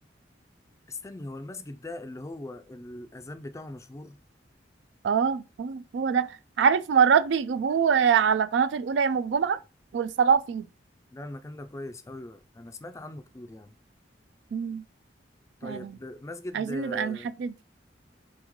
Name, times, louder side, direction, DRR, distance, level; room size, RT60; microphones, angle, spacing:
voice 1, 0.9-4.2 11.1-13.8 15.6-17.3, left 1 dB, 15° left, 0.4 m, -40 dB
voice 2, 5.0-9.6 9.9-10.7 14.5-14.8 15.6-15.9 16.5-17.6, right 7 dB, 70° right, 0.3 m, -24 dB
4.3 x 3.1 x 3.6 m
head